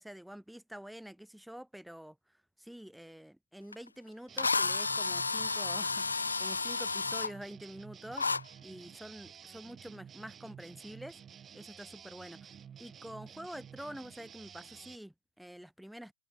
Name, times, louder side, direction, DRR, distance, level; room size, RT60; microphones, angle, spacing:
voice 1, 0.0-2.2 2.6-8.3 8.6-11.2 11.5-16.1, equal, ahead, 1.1 m, -47 dB
Drill, 3.7-3.8 4.4-7.3 8.2-8.4, left 4 dB, 80° left, 0.5 m, -31 dB
sound 1, 4.3-15.0, right 8 dB, 20° right, 5.9 m, -52 dB
figure-of-eight pair, 100°, 0 cm